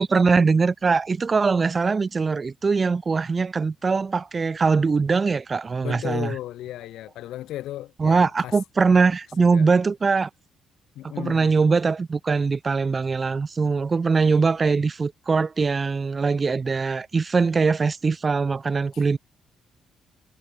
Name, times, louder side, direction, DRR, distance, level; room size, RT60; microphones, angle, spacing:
voice 1, 0.0-6.3 8.0-10.3 11.2-19.2, right 4 dB, 35° right, 0.3 m, -22 dB
voice 2, 5.8-8.6 9.4-9.7 10.9-11.5 18.9-19.0, left 14 dB, 85° left, 0.9 m, -35 dB
cardioid pair, 90°, 0 cm